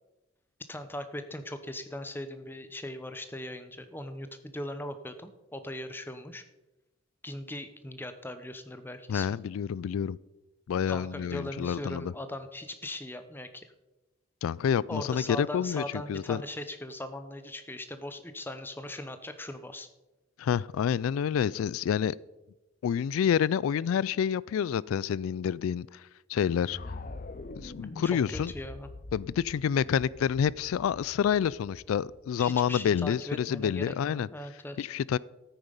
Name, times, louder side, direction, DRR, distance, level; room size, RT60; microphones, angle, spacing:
voice 1, 0.7-6.4 7.2-9.3 10.9-13.7 14.9-19.9 28.0-28.9 32.4-34.9, left 1 dB, 10° left, 0.8 m, -39 dB
voice 2, 9.1-10.2 10.7-12.1 14.4-16.4 20.4-22.2 22.8-26.0 26.3-26.8 27.6-28.5 29.1-34.3 34.8-35.2, left 8 dB, 90° left, 0.3 m, -28 dB
sound 1, 26.6-32.7, left 2 dB, 40° left, 0.6 m, -44 dB
13.5 x 8.9 x 5.3 m
head